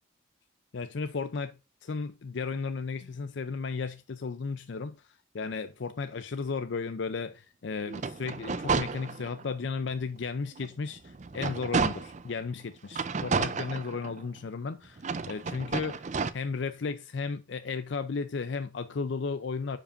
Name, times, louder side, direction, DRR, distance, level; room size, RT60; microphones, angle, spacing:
voice 1, 0.7-1.5 1.8-16.0 16.3-19.8, left 4 dB, 65° left, 0.5 m, -34 dB
sound 1, 7.8-9.5 10.0-10.1 10.6-12.3 12.9-14.4 15.0-16.3, right 4 dB, 35° right, 0.4 m, -31 dB
10.0 x 5.1 x 2.5 m
head